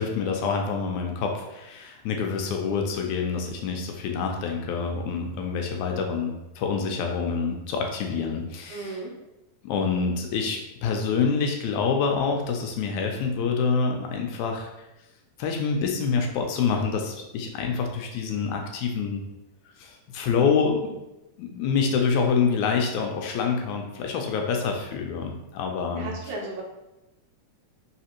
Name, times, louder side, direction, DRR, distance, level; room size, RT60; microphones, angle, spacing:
voice 1, 0.0-9.0 9.6-14.7 15.4-19.3 19.8-20.8 21.4-26.1, left 5 dB, 80° left, 2 dB, 1.9 m, -26 dB
voice 2, 8.7-9.1 25.9-26.6, right 2 dB, 75° right, -2 dB, 2.2 m, -34 dB
4.8 x 3.3 x 2.9 m, 0.96 s
omnidirectional pair, 3.5 m